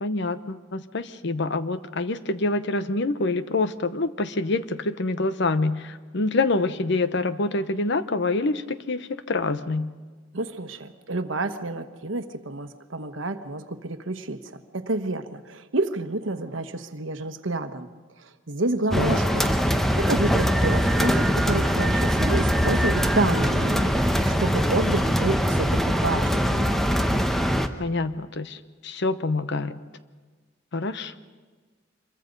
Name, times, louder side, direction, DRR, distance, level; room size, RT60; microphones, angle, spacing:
voice 1, 0.0-9.9 19.0-19.2 27.8-29.8 30.7-31.2, left 3 dB, 65° left, 12 dB, 0.9 m, -26 dB
voice 2, 10.3-17.9 18.2-26.8, right 2 dB, 75° right, 9 dB, 1.2 m, -29 dB
sound 1, 18.9-27.7, equal, ahead, 0.9 m, -22 dB
26.0 x 23.0 x 5.3 m, 1.4 s
head